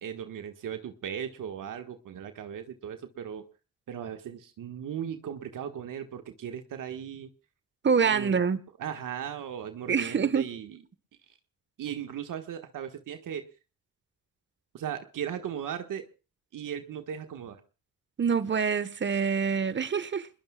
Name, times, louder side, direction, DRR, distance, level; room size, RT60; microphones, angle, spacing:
voice 1, 0.0-3.4 3.9-7.3 8.0-8.4 8.8-10.8 11.3-11.4 11.8-13.5 14.7-16.1 16.5-17.6, right 9 dB, 70° right, 1.6 m, -37 dB
voice 2, 7.8-8.6 9.9-10.5 18.2-20.3, right 6 dB, 35° right, 1.2 m, -26 dB
27.5 x 21.0 x 2.3 m
cardioid pair, 75°, 33 cm